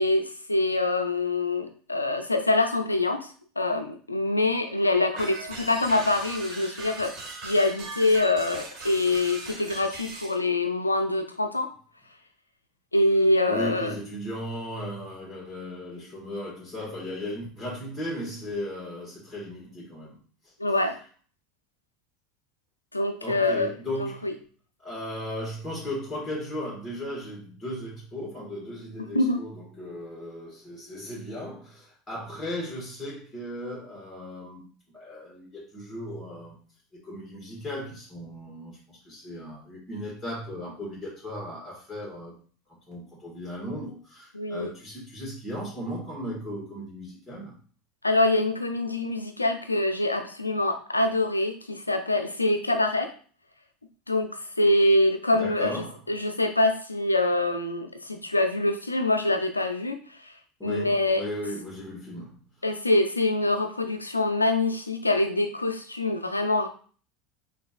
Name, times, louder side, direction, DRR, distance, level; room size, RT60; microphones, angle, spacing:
voice 1, 0.0-3.3 3.6-7.1 7.4-11.7 12.9-14.0 20.6-21.0 22.9-23.7 24.0-24.3 29.1-29.4 44.3-44.7 48.0-53.1 54.1-54.3 54.6-60.0 60.6-61.2 62.6-66.7, left 2 dB, 85° left, 7 dB, 0.5 m, -25 dB
sound 1, 5.2-10.4, right 3 dB, 40° right, 1.5 m, -39 dB
voice 2, 13.5-20.2 23.2-24.3 24.8-36.6 36.9-42.3 42.9-47.5 55.3-56.0 60.6-62.4, equal, 15° left, -6 dB, 1.8 m, -36 dB
5.9 x 2.6 x 2.5 m, 0.43 s
figure-of-eight pair, 75°, 0 cm